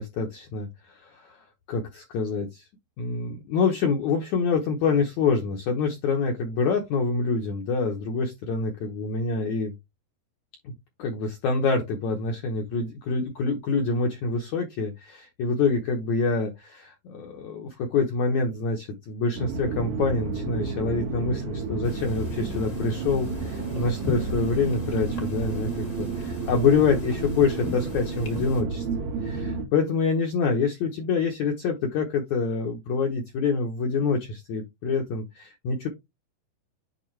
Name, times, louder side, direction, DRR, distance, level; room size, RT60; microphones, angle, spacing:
voice 1, 0.0-1.4 1.7-2.6 3.0-9.7 10.6-10.7 11.0-35.9, left 4 dB, 80° left, 3 dB, 1.6 m, -26 dB
sound 1, 19.4-29.7, right 4 dB, 65° right, 3.4 m, -31 dB
sound 2, 21.8-28.6, left 3 dB, 55° left, 0.8 m, -39 dB
8.4 x 3.5 x 3.2 m, 0.20 s
omnidirectional pair, 4.7 m